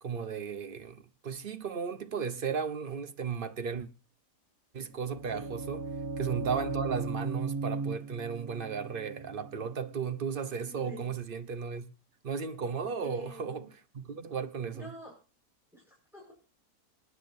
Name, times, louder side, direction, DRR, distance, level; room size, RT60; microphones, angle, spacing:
voice 1, 0.0-3.9 4.7-5.9 6.2-11.9 12.2-13.7 13.9-14.9, right 6 dB, 40° right, 1.0 m, -35 dB
sound 1, 4.9-10.7, right 3 dB, 90° right, 1.9 m, -37 dB
voice 2, 10.6-11.1 13.0-13.7 14.7-15.1 15.7-16.3, equal, ahead, 5.6 m, -47 dB
27.5 x 9.9 x 2.7 m
omnidirectional pair, 1.6 m